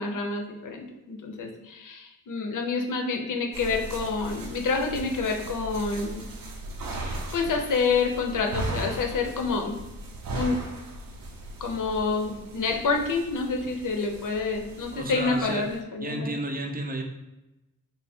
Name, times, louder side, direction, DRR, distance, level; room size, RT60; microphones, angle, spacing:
voice 1, 0.0-6.2 6.9-9.8 10.3-10.6 11.6-16.3, left 4 dB, 65° left, 3 dB, 0.7 m, -28 dB
sound 1, 3.5-15.8, right 1 dB, 75° right, 0.7 m, -38 dB
voice 2, 14.9-15.7 16.0-17.0, right 1 dB, 25° right, 2 dB, 0.5 m, -32 dB
3.4 x 2.1 x 4.2 m, 0.98 s
wide cardioid pair, 100°, 34 cm